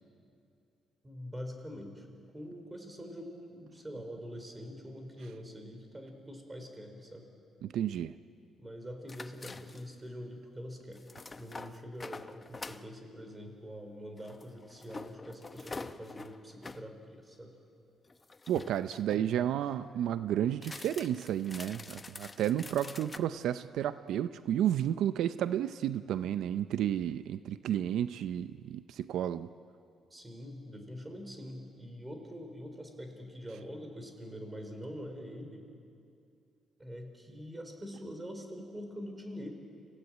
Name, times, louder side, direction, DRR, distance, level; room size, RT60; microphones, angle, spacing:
voice 1, 1.0-2.1 2.3-7.3 8.6-11.0 11.3-17.5 19.2-19.6 30.1-35.6 36.8-39.5, equal, 15° right, 5 dB, 4.8 m, -44 dB
voice 2, 7.6-8.1 18.5-29.5, right 10 dB, 80° right, 12 dB, 0.5 m, -32 dB
sound 1, 9.1-10.0 10.9-12.9 14.2-16.9 18.1-19.3 20.5-23.2, left 3 dB, 25° left, 1.0 m, -46 dB
28.0 x 16.5 x 9.2 m, 2.4 s
cardioid pair, 90°, 0 cm